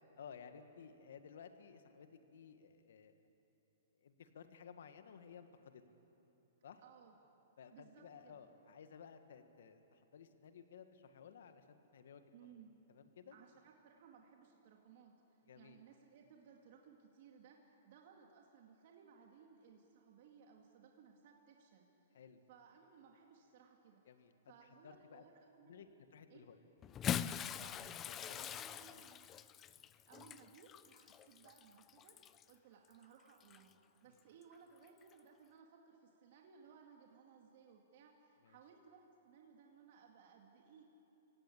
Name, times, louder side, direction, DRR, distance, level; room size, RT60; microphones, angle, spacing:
voice 1, 0.2-3.1 4.0-5.8 6.6-6.8 7.6-12.5 12.9-13.4 15.5-15.8 22.1-22.4 24.1-24.3 24.8-25.2 25.6-26.6 28.1-29.1 38.4-38.6, left 7 dB, 75° left, 8 dB, 1.7 m, -56 dB
voice 2, 6.8-7.2 7.7-8.5 12.3-12.7 13.3-22.2 22.5-25.8 26.3-26.5 27.6-29.3 30.1-33.7 34.0-40.8, right 6 dB, 55° right, 1 dB, 2.2 m, -62 dB
Bathtub (filling or washing) / Splash splatter, 26.8-32.5 33.4-33.6 35.0-35.1, left 9 dB, 25° left, 0.6 m, -43 dB
25.5 x 17.0 x 8.6 m, 3.0 s
hypercardioid pair, 135°, 0 cm